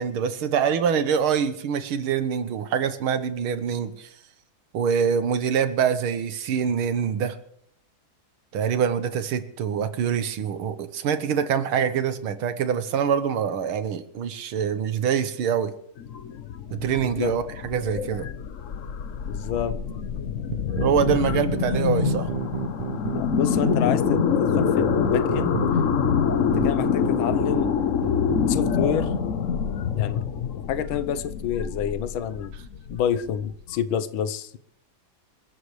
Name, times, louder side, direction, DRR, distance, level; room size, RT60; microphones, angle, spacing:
voice 1, 0.0-4.1 4.7-7.4 8.5-15.7 16.7-18.3 20.8-22.3, right 7 dB, 80° right, 11 dB, 1.9 m, -25 dB
sound 1, 16.0-33.8, left 7 dB, 55° left, 0.9 m, -26 dB
voice 2, 17.0-17.3 19.3-19.7 23.1-25.6 26.4-27.7 28.5-29.1 29.9-30.2 30.7-32.5 32.9-34.6, left 9 dB, 75° left, 12 dB, 1.6 m, -28 dB
sound 2, 20.5-29.2, right 7 dB, 60° right, 1.5 m, -31 dB
28.0 x 13.0 x 3.2 m, 0.70 s
omnidirectional pair, 2.3 m